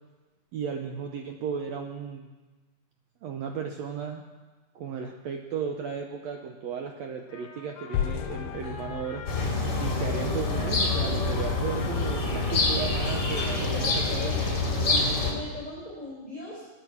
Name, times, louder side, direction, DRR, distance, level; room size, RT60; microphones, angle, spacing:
voice 1, 0.5-2.3 3.2-4.2 4.8-9.3 9.8-14.3, right 6 dB, 75° right, 4 dB, 1.6 m, -35 dB
Trumpet, 7.3-14.6, left 6 dB, 50° left, 2.1 m, -43 dB
sound 1, 7.9-10.9, left 9 dB, 80° left, 2.3 m, -34 dB
sound 2, 9.3-15.3, left 3 dB, 30° left, 2.8 m, -26 dB
voice 2, 13.4-16.7, left 2 dB, 10° left, -7 dB, 4.5 m, -39 dB
21.5 x 9.0 x 6.0 m, 1.3 s
omnidirectional pair, 3.9 m